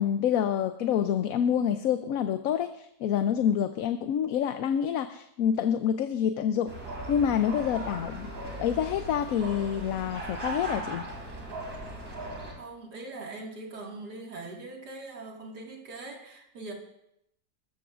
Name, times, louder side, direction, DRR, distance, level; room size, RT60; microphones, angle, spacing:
voice 1, 0.0-6.7 7.1-8.3 8.6-11.1, left 9 dB, 65° left, 9 dB, 1.0 m, -27 dB
sound 1, 6.7-12.5, right 2 dB, 55° right, 3.5 m, -38 dB
voice 2, 12.5-16.7, right 2 dB, 80° right, 0 dB, 2.6 m, -41 dB
21.0 x 14.0 x 2.5 m, 0.78 s
omnidirectional pair, 1.7 m